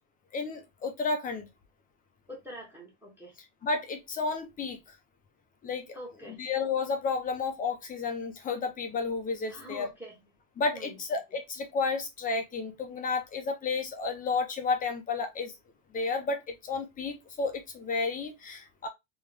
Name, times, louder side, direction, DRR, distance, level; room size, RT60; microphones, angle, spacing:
voice 1, 0.3-1.5 3.6-4.8 5.6-5.9 6.4-9.9 10.6-15.5 15.9-18.9, left 4 dB, 15° left, 0.6 m, -32 dB
voice 2, 2.3-3.4 5.9-6.4 9.5-10.2 10.7-11.0, equal, 5° right, 1.1 m, -44 dB
3.7 x 3.0 x 3.3 m
cardioid pair, 165°, 49 cm